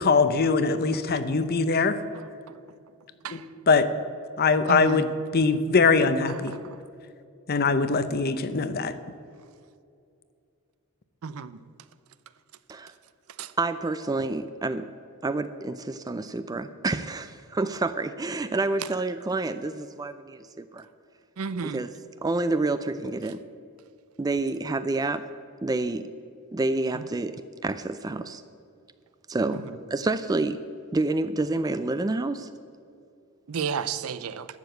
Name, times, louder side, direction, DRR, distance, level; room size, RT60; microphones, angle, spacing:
voice 1, 0.0-2.0 3.3-3.4 3.7-3.9 4.4-6.5 7.5-8.9, left 4 dB, 45° left, 12 dB, 0.6 m, -22 dB
voice 2, 4.7-5.0 11.2-11.6 13.4-13.5 21.4-21.8 33.5-34.5, right 6 dB, 70° right, 15 dB, 0.5 m, -31 dB
voice 3, 13.6-14.9 15.2-20.9 21.6-23.4 24.2-25.3 25.6-26.1 26.5-28.4 29.3-32.5, right 2 dB, 15° right, 12 dB, 0.3 m, -28 dB
12.0 x 7.2 x 7.9 m, 2.4 s
head